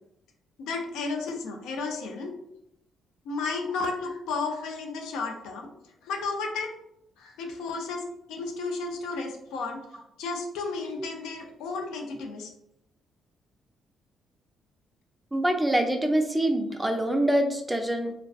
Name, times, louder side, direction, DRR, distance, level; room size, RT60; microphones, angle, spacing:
voice 1, 0.6-2.3 3.3-5.7 6.0-6.7 7.2-9.8 10.2-12.5, left 4 dB, 90° left, 3 dB, 0.4 m, -33 dB
voice 2, 15.3-18.1, right 1 dB, 10° right, 5 dB, 0.3 m, -25 dB
2.3 x 2.2 x 2.3 m, 0.79 s
cardioid pair, 90°, 0 cm